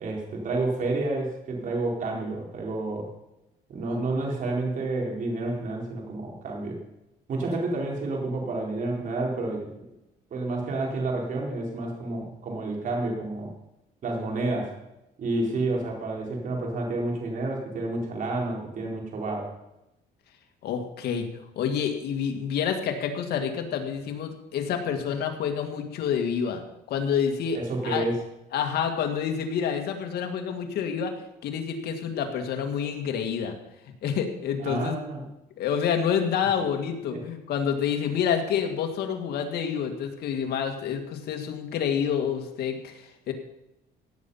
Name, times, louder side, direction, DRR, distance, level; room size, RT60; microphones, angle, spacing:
voice 1, 0.0-3.1 3.7-6.8 7.3-9.7 10.3-13.5 14.0-14.8 15.2-19.5 27.5-28.2 34.6-35.3 37.1-37.2, right 2 dB, 50° right, -1 dB, 4.4 m, -29 dB
voice 2, 20.6-21.3 21.6-28.0 28.5-33.6 34.0-35.0 35.6-43.3, left 7 dB, 70° left, 5 dB, 2.1 m, -28 dB
16.5 x 8.7 x 5.7 m, 0.91 s
cardioid pair, 110°, 17 cm